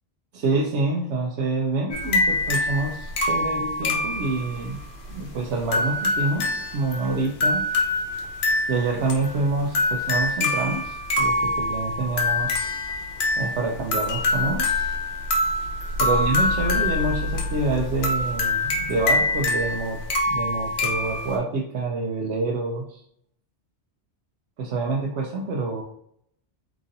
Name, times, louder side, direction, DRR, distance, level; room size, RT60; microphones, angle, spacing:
voice 1, 0.3-4.8 5.1-7.7 8.7-12.8 13.4-14.9 16.0-20.0 20.3-23.0 24.6-25.8, right 3 dB, 80° right, 0 dB, 0.9 m, -27 dB
sound 1, 1.9-21.4, left 2 dB, 65° left, 1.0 m, -25 dB
3.7 x 3.0 x 2.7 m, 0.67 s
omnidirectional pair, 1.2 m